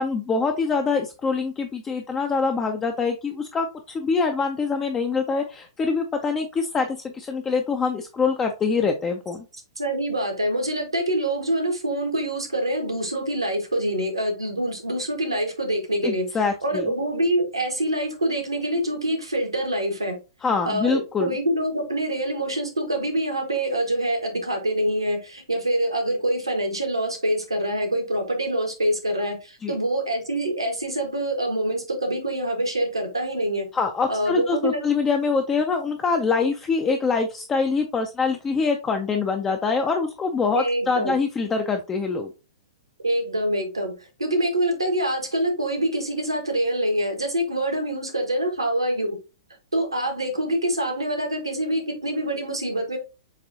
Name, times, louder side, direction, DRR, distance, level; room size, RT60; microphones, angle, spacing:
voice 1, 0.0-9.4 16.0-16.9 20.4-21.3 29.6-29.8 33.7-42.3, left 4 dB, 15° left, 4 dB, 0.5 m, -24 dB
voice 2, 9.8-16.3 16.6-20.2 20.6-33.7 34.1-34.8 40.5-41.1 43.0-49.2 49.7-53.0, right 1 dB, 80° right, 4 dB, 1.4 m, -25 dB
7.2 x 2.6 x 2.7 m, 0.30 s
figure-of-eight pair, 110°, 3 cm